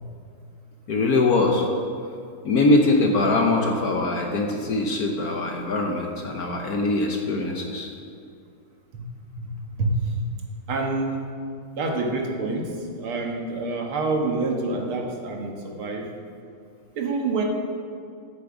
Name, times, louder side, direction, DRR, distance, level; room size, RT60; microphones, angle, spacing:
voice 1, 0.9-1.7 2.4-7.9, left 2 dB, 60° left, 2 dB, 1.1 m, -22 dB
voice 2, 9.4-10.0 10.7-11.2 11.8-16.1 17.0-17.4, right 3 dB, 85° right, 1 dB, 2.2 m, -27 dB
8.3 x 7.9 x 7.1 m, 2.3 s
omnidirectional pair, 2.3 m